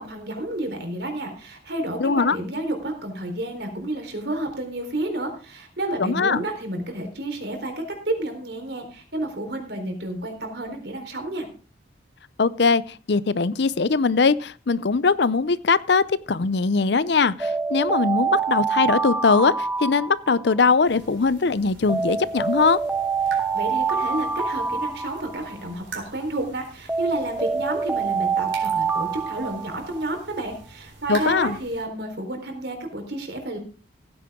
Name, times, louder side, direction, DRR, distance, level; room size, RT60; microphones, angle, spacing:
voice 1, 0.0-11.5 23.3-33.6, right 1 dB, 60° right, 5 dB, 3.9 m, -30 dB
voice 2, 2.0-2.4 6.0-6.4 12.4-22.8 31.1-31.6, left 4 dB, 60° left, 18 dB, 0.6 m, -21 dB
Alarm, 17.4-20.7 21.9-25.7 26.9-30.1, right 5 dB, 10° right, 0.6 m, -26 dB
sound 1, 20.8-31.8, right 4 dB, 85° right, 3.9 m, -44 dB
16.0 x 9.8 x 3.7 m, 0.37 s
head